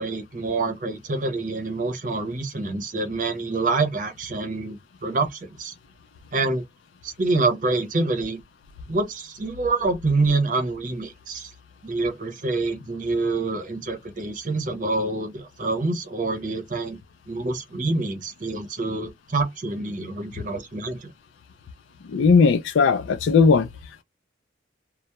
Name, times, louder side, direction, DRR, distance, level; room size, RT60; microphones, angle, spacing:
voice 1, 0.0-5.7 6.3-6.6 7.0-8.4 8.9-11.5 11.8-17.0 17.3-21.1, right 3 dB, 45° right, 0.7 m, -26 dB
voice 2, 22.1-23.7, left 5 dB, 90° left, 0.4 m, -17 dB
2.2 x 2.0 x 2.8 m
head